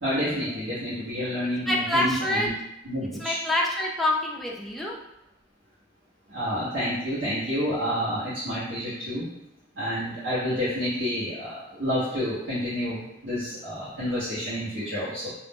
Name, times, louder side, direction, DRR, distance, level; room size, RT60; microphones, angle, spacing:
voice 1, 0.0-2.5 2.8-3.4 6.3-9.3 9.7-15.3, equal, 85° right, -13 dB, 1.0 m, -29 dB
voice 2, 1.7-2.5 3.2-4.9, left 1 dB, ahead, -3 dB, 0.3 m, -26 dB
2.4 x 2.0 x 3.5 m, 0.86 s
head